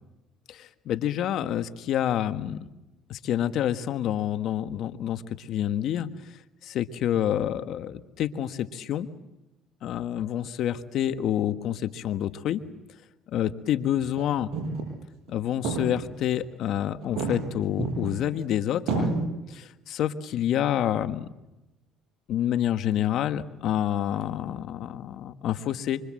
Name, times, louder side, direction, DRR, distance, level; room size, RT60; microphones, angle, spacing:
voice 1, 0.5-2.7 3.1-6.1 6.6-9.1 9.8-12.6 13.3-14.5 15.3-19.1 19.5-21.3 22.3-26.0, left 11 dB, 60° left, 10 dB, 1.5 m, -28 dB
sound 1, 13.9-14.2 14.5-15.0 15.3-15.4 15.6-16.5 17.0-18.5 18.9-19.3, right 3 dB, 65° right, 7.9 m, -30 dB
25.5 x 25.0 x 7.7 m, 0.99 s
supercardioid pair, 95°, 0 cm